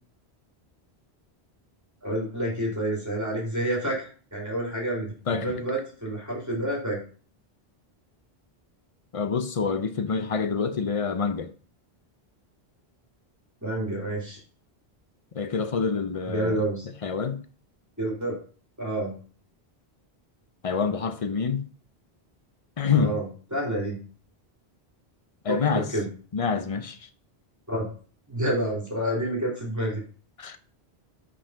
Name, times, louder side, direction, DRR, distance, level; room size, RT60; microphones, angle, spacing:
voice 1, 2.0-7.0 13.6-14.4 16.3-16.8 18.0-18.3 18.8-19.1 22.9-23.2 23.5-24.0 25.5-26.1 27.7-27.9 28.3-30.0, right 1 dB, 15° right, 3.1 m, -29 dB
voice 2, 5.3-5.6 9.1-11.5 15.3-16.6 17.0-17.4 20.6-21.6 22.8-23.2 25.4-25.9 26.3-27.0 30.4-30.6, left 5 dB, 40° left, 0.6 m, -26 dB
5.7 x 5.5 x 5.6 m
omnidirectional pair, 1.1 m